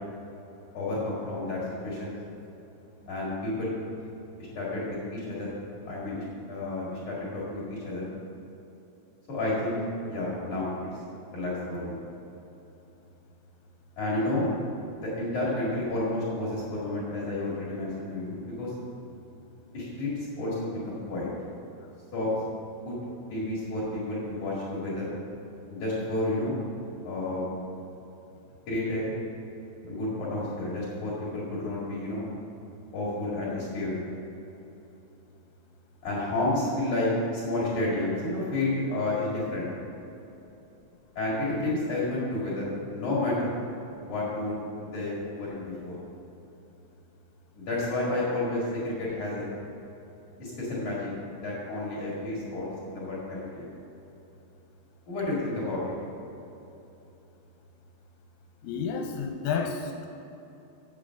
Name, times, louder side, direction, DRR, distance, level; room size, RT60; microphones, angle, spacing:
voice 1, 0.7-2.1 3.1-3.7 4.5-5.5 5.8-8.1 9.3-9.8 10.1-10.7 11.3-12.0 14.0-14.5 15.0-18.7 19.7-21.3 22.1-22.3 22.8-22.9 23.3-25.1 25.7-26.6 27.0-27.6 28.7-29.1 29.9-32.3 32.9-34.0 36.0-39.7 41.2-43.6 44.0-46.0 47.6-49.6 50.4-51.1 51.4-53.7 55.1-55.8, left 2 dB, 50° left, -7 dB, 2.5 m, -31 dB
voice 2, 58.6-60.1, left 6 dB, 85° left, 3 dB, 3.1 m, -30 dB
8.5 x 7.3 x 6.3 m, 3.0 s
omnidirectional pair, 5.9 m